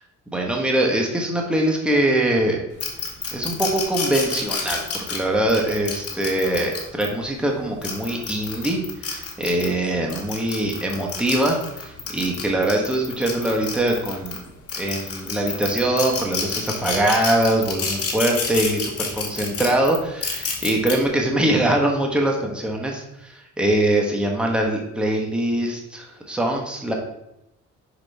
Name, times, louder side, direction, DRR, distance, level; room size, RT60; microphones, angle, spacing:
voice 1, 0.3-2.6 3.3-4.8 5.1-14.4 14.8-26.9, right 1 dB, 5° right, -1 dB, 1.2 m, -23 dB
sound 1, 2.8-7.1 7.7-9.7 10.1-14.4 14.7-20.9, left 5 dB, 50° left, 1.6 m, -29 dB
6.1 x 4.9 x 3.4 m, 0.84 s
cardioid pair, 90°, 30 cm